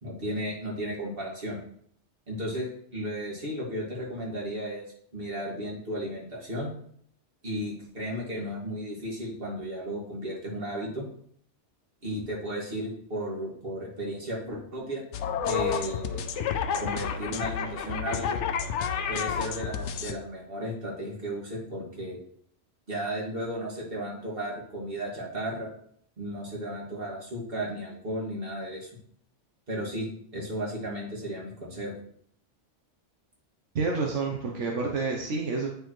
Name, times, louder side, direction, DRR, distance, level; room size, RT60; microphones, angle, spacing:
voice 1, 0.0-1.6 2.3-4.8 5.1-6.7 7.4-11.1 12.0-15.0 15.4-16.2 16.8-18.4 19.1-22.2 22.9-25.7 26.2-28.9 29.7-30.1 30.3-31.9, equal, 50° right, -4 dB, 2.3 m, -34 dB
sound 1, 15.1-20.1, left 7 dB, 80° left, 0.9 m, -30 dB
voice 2, 33.7-35.7, right 4 dB, 80° right, 0 dB, 1.2 m, -29 dB
9.3 x 4.5 x 3.1 m, 0.63 s
omnidirectional pair, 1.2 m